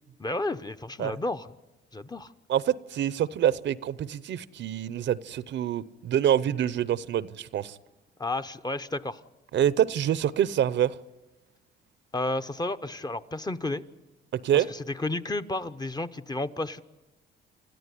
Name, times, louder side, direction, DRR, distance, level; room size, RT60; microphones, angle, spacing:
voice 1, 0.2-1.5 1.9-2.3 8.2-9.2 12.1-13.8 14.5-16.8, left 2 dB, 20° left, 9 dB, 0.9 m, -32 dB
voice 2, 2.5-7.8 9.5-10.9 14.3-14.7, right 10 dB, 65° right, 18 dB, 0.7 m, -26 dB
27.5 x 14.0 x 9.8 m, 1.1 s
cardioid pair, 90°, 20 cm